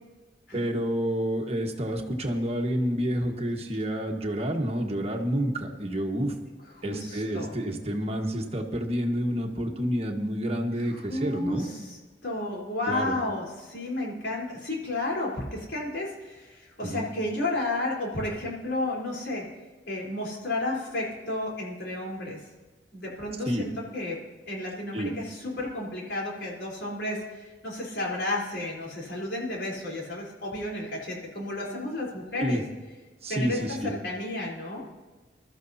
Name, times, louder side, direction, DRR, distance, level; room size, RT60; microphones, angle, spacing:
voice 1, 0.5-6.3 6.8-11.7 12.9-13.2 16.8-17.1 23.5-23.7 24.9-25.1 32.4-32.6 33.2-33.9, equal, 35° right, 2 dB, 1.3 m, -29 dB
voice 2, 6.8-7.6 10.8-12.0 12.2-19.4 19.9-22.4 22.9-24.2 24.5-32.6 33.3-34.8, left 2 dB, 75° left, -4 dB, 3.7 m, -32 dB
21.5 x 13.0 x 2.8 m, 1.3 s
head